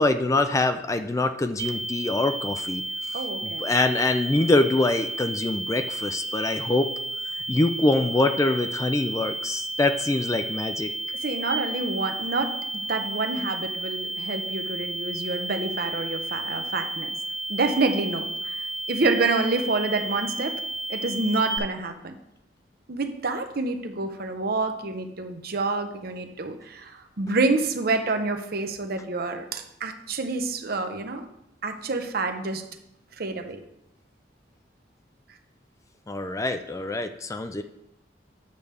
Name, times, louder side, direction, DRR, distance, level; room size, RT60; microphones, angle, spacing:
voice 1, 0.0-2.8 3.1-6.9 7.2-10.9 36.1-37.6, left 2 dB, 15° left, 8 dB, 0.4 m, -24 dB
sound 1, 1.6-21.6, right 2 dB, 25° right, 1.2 m, -32 dB
voice 2, 3.1-3.6 11.1-17.1 17.5-18.5 18.9-20.6 20.9-22.1 22.9-31.2 31.6-32.6 33.2-33.6, right 3 dB, 55° right, 6 dB, 0.8 m, -28 dB
9.1 x 3.4 x 6.7 m, 0.82 s
head